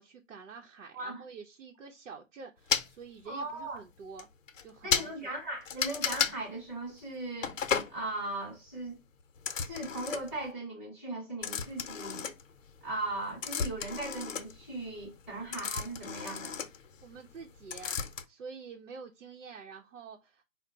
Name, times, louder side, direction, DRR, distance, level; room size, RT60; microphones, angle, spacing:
voice 1, 0.0-4.3 4.6-5.3 17.0-18.0 18.3-20.4, right 5 dB, 75° right, 0.8 m, -48 dB
sound 1, 2.7-2.9 3.7-3.8 4.2-4.3 4.5-4.6 4.9-5.1 5.7-6.4 7.4-7.9 9.4-10.4 11.4-12.8 13.1-17.4 17.7-18.2, left 7 dB, 75° left, 0.7 m, -33 dB
voice 2, 3.2-3.8 4.8-7.6 7.9-9.0 9.6-12.3 12.8-16.6, right 2 dB, 10° right, 0.9 m, -38 dB
4.6 x 2.1 x 3.8 m
hypercardioid pair, 175°, 39 cm